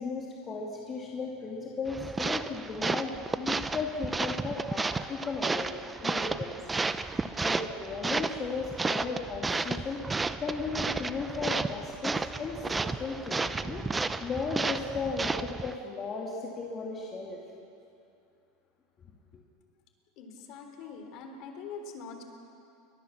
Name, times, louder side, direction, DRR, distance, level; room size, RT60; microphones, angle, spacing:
voice 1, 0.0-6.6 7.1-13.9 14.2-17.4, left 4 dB, 20° left, -2 dB, 2.5 m, -36 dB
sound 1, 1.9-15.8, right 3 dB, 10° right, 0.6 m, -32 dB
voice 2, 20.2-22.2, left 5 dB, 45° left, 5 dB, 3.6 m, -43 dB
29.5 x 23.0 x 7.3 m, 2.5 s
supercardioid pair, 165°, 0 cm